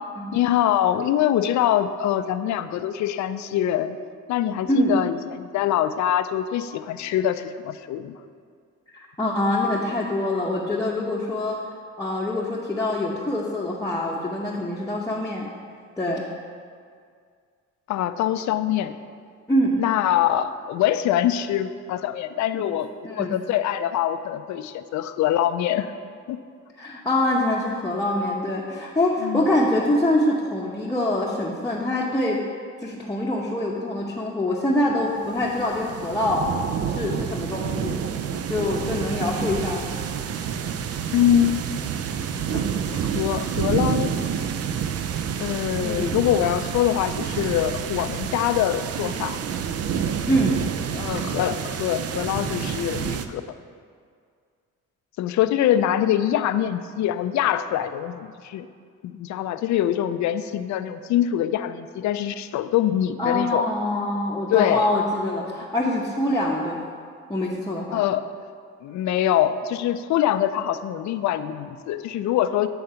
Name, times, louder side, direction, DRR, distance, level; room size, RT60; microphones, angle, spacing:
voice 1, 0.3-4.0 4.3-8.2 17.9-18.9 19.8-25.9 26.3-26.4 29.2-29.5 41.1-41.7 42.5-44.1 45.4-49.4 50.9-53.4 55.2-58.7 59.0-63.7 64.5-64.9 67.9-68.3 68.8-72.7, left 11 dB, 70° left, 11 dB, 0.5 m, -24 dB
voice 2, 8.9-15.5 16.0-16.2 19.5-19.8 22.5-22.7 23.0-23.3 26.8-32.4 32.8-36.5 36.9-38.0 38.5-40.0 45.8-46.2 50.3-50.6 63.2-66.9 67.3-68.0, left 1 dB, 10° left, -5 dB, 0.8 m, -25 dB
sound 1, 35.2-53.3, right 8 dB, 55° right, 0.5 m, -28 dB
9.1 x 3.9 x 5.6 m, 2.1 s
cardioid pair, 90°, 30 cm